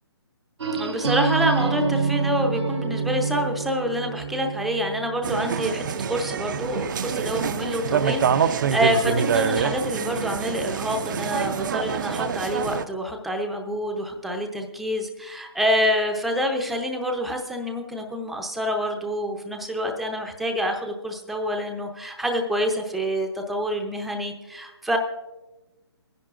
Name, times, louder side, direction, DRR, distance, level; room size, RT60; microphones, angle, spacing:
sound 1, 0.6-6.4, right 5 dB, 80° right, 1.0 m, -28 dB
voice 1, 0.7-25.0, equal, ahead, 3 dB, 0.6 m, -27 dB
sound 2, 5.2-12.8, right 7 dB, 45° right, 0.5 m, -26 dB
21.5 x 10.5 x 2.5 m, 1.1 s
hypercardioid pair, 150°, 14 cm